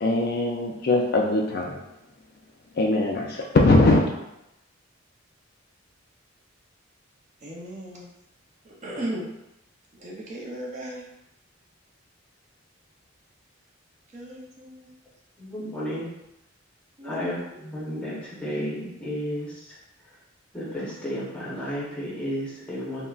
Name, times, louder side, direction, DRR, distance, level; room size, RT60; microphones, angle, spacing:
voice 1, 0.0-1.8 2.8-4.0, left 2 dB, 45° left, 0 dB, 0.3 m, -21 dB
voice 2, 7.4-8.1 8.6-9.3 10.0-11.0 14.1-14.9 17.0-17.2, right 1 dB, 35° right, -3 dB, 0.5 m, -36 dB
voice 3, 15.4-16.1 17.0-19.8 20.5-23.0, equal, 5° left, -7 dB, 0.7 m, -32 dB
3.7 x 2.1 x 2.3 m, 0.89 s
head